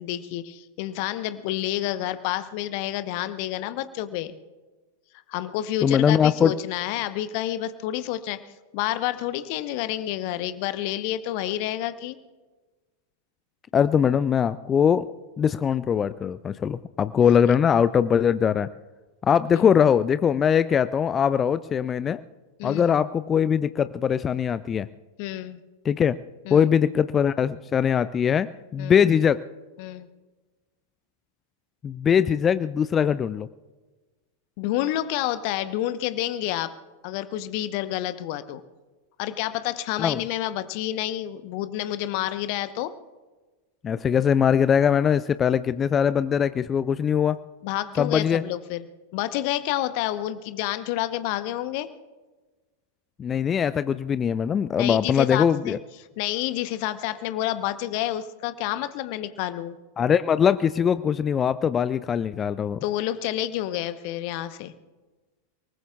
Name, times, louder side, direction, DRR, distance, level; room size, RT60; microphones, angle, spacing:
voice 1, 0.0-4.3 5.3-8.4 8.7-12.2 19.5-19.6 22.6-22.9 25.2-25.6 26.5-26.7 28.8-29.0 29.8-30.1 34.6-36.7 37.0-38.6 39.2-42.9 47.6-48.8 49.1-51.9 54.8-55.8 56.2-59.8 62.8-64.7, left 13 dB, 45° left, 12 dB, 0.9 m, -29 dB
voice 2, 5.8-6.5 13.7-15.1 15.4-18.7 19.2-22.2 22.6-24.9 25.8-26.2 26.5-29.4 31.8-33.5 40.0-40.2 43.8-47.4 48.0-48.4 53.2-55.8 60.0-62.8, left 8 dB, 25° left, 15 dB, 0.4 m, -21 dB
30.0 x 19.5 x 2.4 m, 1.3 s
figure-of-eight pair, 90°, 0 cm